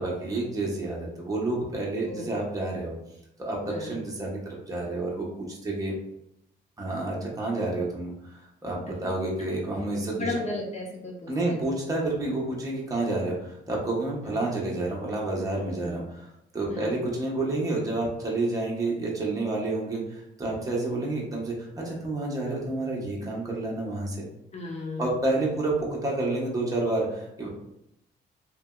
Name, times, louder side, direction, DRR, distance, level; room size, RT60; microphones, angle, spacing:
voice 1, 0.0-2.9 3.4-5.9 6.8-10.4 11.3-16.2 16.5-24.2 25.0-27.5, right 2 dB, 15° right, -3 dB, 0.8 m, -29 dB
voice 2, 3.6-4.0 10.1-11.7 14.3-14.4 15.7-15.9 16.7-17.0 24.5-25.1, left 2 dB, 35° left, -1 dB, 0.9 m, -35 dB
2.9 x 2.6 x 2.2 m, 0.80 s
cardioid pair, 90°, 20 cm